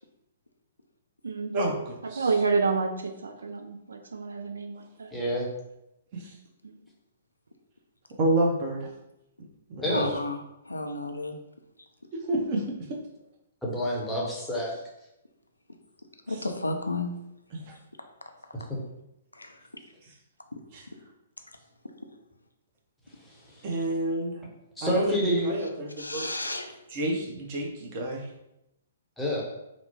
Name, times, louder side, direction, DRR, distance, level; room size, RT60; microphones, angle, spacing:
voice 1, 1.5-2.3 6.1-6.3 8.2-8.9 9.7-10.0 12.2-12.7 16.3-16.5 17.5-17.7 20.0-20.1 20.7-20.9 23.6-24.4 24.8-26.3 26.9-28.3, right 1 dB, 35° right, -1 dB, 0.6 m, -29 dB
voice 2, 2.2-5.1 6.6-6.7, right 4 dB, 70° right, 4 dB, 0.3 m, -29 dB
voice 3, 5.1-5.5 9.8-10.1 13.6-14.7 24.8-25.5 29.2-29.4, equal, 5° left, -5 dB, 0.7 m, -28 dB
voice 4, 9.9-10.4 10.7-11.3 16.3-17.1 19.4-19.5 26.0-26.7, left 2 dB, 80° left, 5 dB, 0.3 m, -31 dB
2.8 x 2.0 x 2.8 m, 0.87 s
figure-of-eight pair, 120°, 0 cm